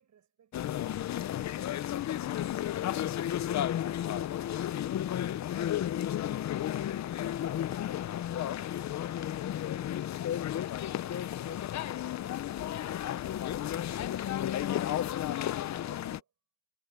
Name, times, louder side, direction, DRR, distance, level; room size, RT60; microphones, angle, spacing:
voice 1, 0.0-1.3 1.8-2.5 10.8-16.3, right 8 dB, 50° right, 7.3 m, -64 dB
sound 1, 0.5-16.2, left 11 dB, 50° left, 0.6 m, -33 dB
cardioid pair, 135°, 36 cm